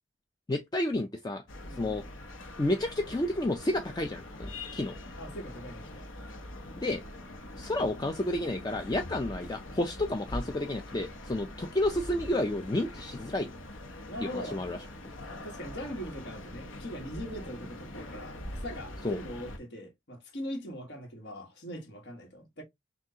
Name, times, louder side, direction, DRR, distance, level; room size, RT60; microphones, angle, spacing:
voice 1, 0.5-1.4 1.8-2.0 2.6-4.9 6.8-7.0 7.6-13.5 14.2-14.8 19.0-19.2, left 1 dB, 20° left, 0.4 m, -31 dB
sound 1, 1.5-19.6, left 1 dB, 80° left, 1.0 m, -43 dB
voice 2, 1.6-2.0 5.1-6.1 14.1-14.6 15.3-22.6, equal, 55° left, 1.5 m, -41 dB
6.2 x 2.4 x 2.8 m
head